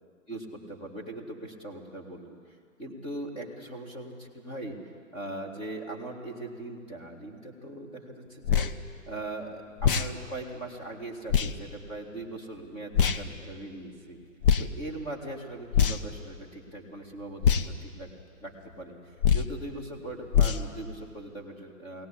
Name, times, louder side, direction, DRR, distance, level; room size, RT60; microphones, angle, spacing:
voice 1, 0.3-2.4 2.8-4.8 5.1-8.7 9.1-14.2 14.6-18.1 18.4-22.1, right 2 dB, 15° left, 0 dB, 2.1 m, -40 dB
sound 1, 8.4-8.7 9.8-10.1 11.3-11.5 12.9-13.2 14.4-14.7 15.7-16.1 17.4-17.7 19.2-19.5 20.3-20.6, left 7 dB, 40° left, 0.9 m, -23 dB
22.0 x 17.5 x 8.7 m, 2.1 s
hypercardioid pair, 150°, 41 cm